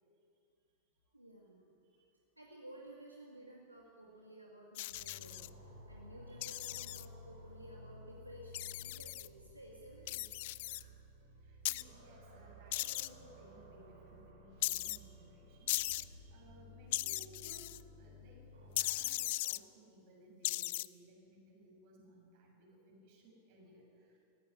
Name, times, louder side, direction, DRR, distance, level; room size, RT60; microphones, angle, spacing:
voice 1, 1.1-1.7 2.4-10.9, right 1 dB, 85° right, -1 dB, 2.2 m, -55 dB
sound 1, 4.8-5.5 6.4-7.1 8.5-9.3 10.1-10.8 11.7-11.8 12.7-13.1 14.6-15.0 15.7-16.0 16.9-17.8 18.8-19.6 20.4-20.9, left 19 dB, 50° left, 0.4 m, -37 dB
sound 2, 4.9-18.8, equal, 70° right, 7.0 m, -55 dB
voice 2, 6.3-6.7 11.4-17.7 18.0-18.5 18.8-24.2, right 1 dB, 50° right, 0 dB, 7.0 m, -60 dB
19.0 x 15.0 x 9.8 m, 2.4 s
figure-of-eight pair, 90°, 0 cm